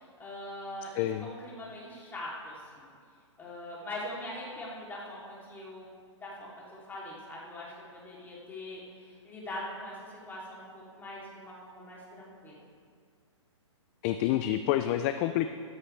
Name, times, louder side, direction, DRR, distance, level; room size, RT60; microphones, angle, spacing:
voice 1, 0.0-0.9 1.2-2.9 3.4-5.9 6.2-12.6, left 1 dB, 10° left, -6 dB, 3.0 m, -42 dB
voice 2, 0.9-1.3 14.0-15.5, left 12 dB, 25° left, 9 dB, 0.4 m, -28 dB
14.0 x 12.5 x 3.3 m, 2.1 s
hypercardioid pair, 140°, 16 cm